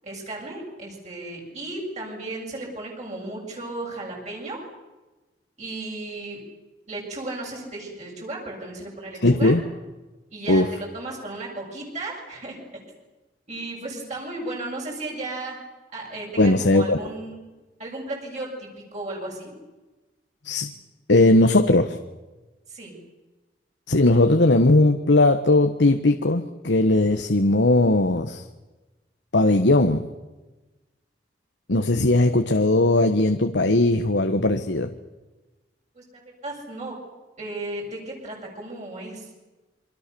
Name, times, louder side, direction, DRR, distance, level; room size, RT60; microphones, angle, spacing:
voice 1, 0.0-4.6 5.6-6.4 6.9-9.5 10.3-12.8 13.5-15.6 15.9-17.4 17.8-19.5 22.7-22.9 35.9-36.0 36.4-36.9 37.4-39.3, right 2 dB, 40° right, -2 dB, 7.5 m, -35 dB
voice 2, 9.2-9.6 10.5-10.7 16.4-17.0 20.4-20.7 21.1-22.0 23.9-28.4 29.3-30.0 31.7-34.9, left 2 dB, 90° left, 7 dB, 1.3 m, -18 dB
28.0 x 24.5 x 7.0 m, 1.1 s
head